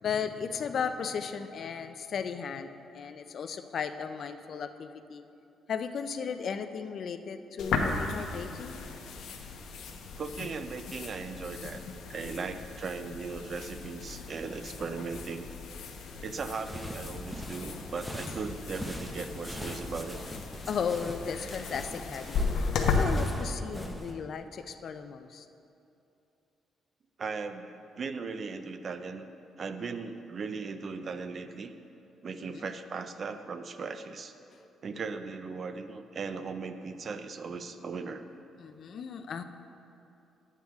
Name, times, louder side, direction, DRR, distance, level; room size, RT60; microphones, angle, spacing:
voice 1, 0.0-5.2 5.7-8.8 12.2-12.3 20.7-22.4 22.8-25.5 32.4-32.7 38.6-39.4, left 6 dB, 45° left, 9 dB, 0.4 m, -35 dB
sound 1, 7.6-23.0, left 5 dB, 70° left, 0.8 m, -36 dB
voice 2, 10.1-11.8 12.1-15.5 16.2-20.2 27.2-29.3 29.6-31.7 32.2-34.3 34.8-38.3, right 4 dB, 35° right, 9 dB, 0.4 m, -38 dB
sound 2, 16.4-24.1, equal, ahead, 0.7 m, -42 dB
11.0 x 8.2 x 3.5 m, 2.7 s
cardioid pair, 170°, 0 cm